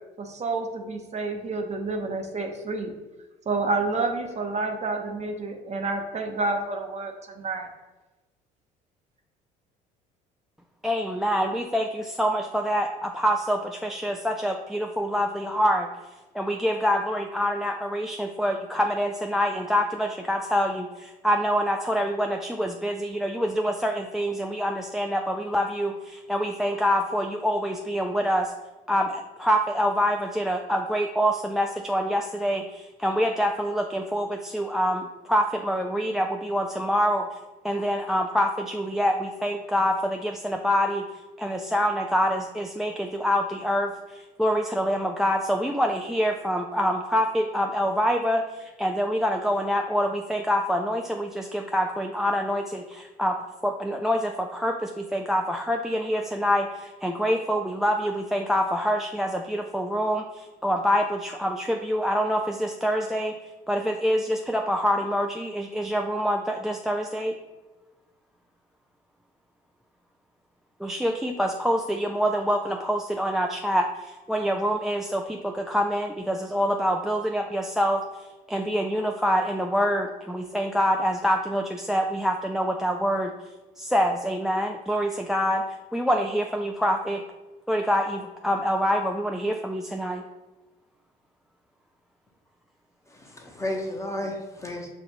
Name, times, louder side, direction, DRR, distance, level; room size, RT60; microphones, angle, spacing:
voice 1, 0.2-2.9 3.5-7.7, right 3 dB, 35° right, 4 dB, 0.8 m, -29 dB
voice 2, 10.8-15.9 16.3-28.5 28.9-37.4 37.6-41.0 41.4-53.4 53.6-63.4 63.7-67.3 70.8-78.0 78.5-83.3 83.8-85.6 85.9-87.2 87.7-90.2, equal, ahead, 3 dB, 0.3 m, -26 dB
voice 3, 93.1-94.9, left 1 dB, 15° left, 1 dB, 1.0 m, -33 dB
6.3 x 2.5 x 2.9 m, 1.1 s
hypercardioid pair, 70°, 20 cm